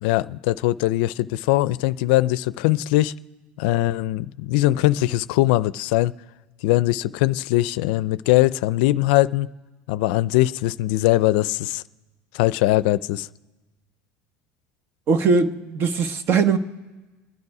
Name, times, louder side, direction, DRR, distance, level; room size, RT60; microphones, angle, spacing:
voice 1, 0.0-3.1 3.6-6.1 6.6-9.5 9.9-11.8 12.3-13.3, left 16 dB, 80° left, 0.4 m, -21 dB
voice 2, 15.1-16.6, right 5 dB, 45° right, 1.1 m, -20 dB
28.0 x 9.5 x 4.9 m
supercardioid pair, 115°, 5 cm